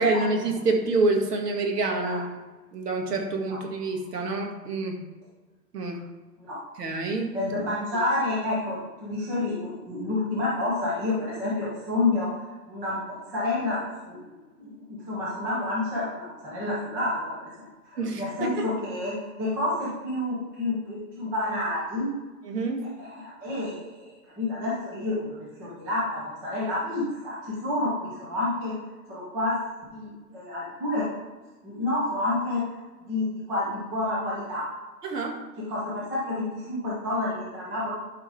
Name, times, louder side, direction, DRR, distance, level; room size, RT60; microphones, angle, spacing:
voice 1, 0.0-2.4 2.7-5.0 5.7-6.0 6.8-7.4 18.0-18.6 22.4-22.9 35.0-35.4, right 3 dB, 70° right, 2 dB, 2.2 m, -27 dB
voice 2, 7.3-12.3 12.7-14.2 14.6-17.4 17.9-22.1 23.0-28.7 29.1-29.6 29.9-31.1 31.6-32.6 33.1-34.7 35.7-37.9, left 2 dB, 5° right, -7 dB, 0.5 m, -29 dB
11.5 x 5.1 x 3.5 m, 1.2 s
hypercardioid pair, 150°, 49 cm